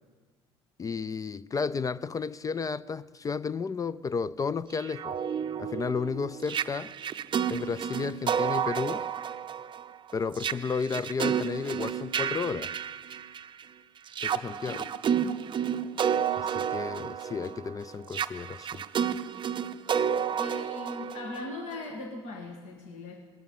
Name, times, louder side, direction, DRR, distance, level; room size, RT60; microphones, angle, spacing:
voice 1, 0.8-5.2 5.6-6.9 7.5-9.1 10.1-12.7 14.2-14.8 16.4-18.8, left 5 dB, 25° left, 0.4 m, -32 dB
sound 1, 4.8-13.6 14.1-21.9, right 8 dB, 35° right, 0.6 m, -31 dB
voice 2, 15.1-15.5 20.4-23.3, left 2 dB, 60° left, 1.9 m, -40 dB
19.5 x 12.5 x 5.5 m
hypercardioid pair, 65°, 13 cm